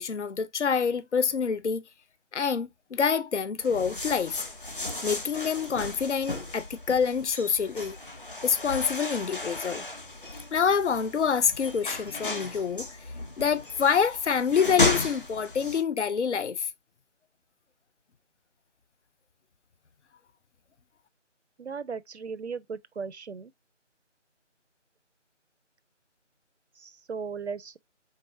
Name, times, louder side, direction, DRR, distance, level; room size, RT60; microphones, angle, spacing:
voice 1, 0.0-1.8 2.3-4.3 5.0-7.9 8.4-9.8 10.5-12.8 13.4-16.7, left 6 dB, 65° left, 0.6 m, -26 dB
sound 1, 3.6-15.8, left 2 dB, 45° left, 0.9 m, -34 dB
voice 2, 21.6-23.5 26.8-27.8, right 5 dB, 60° right, 0.5 m, -37 dB
4.6 x 3.8 x 2.7 m
figure-of-eight pair, 165°, 37 cm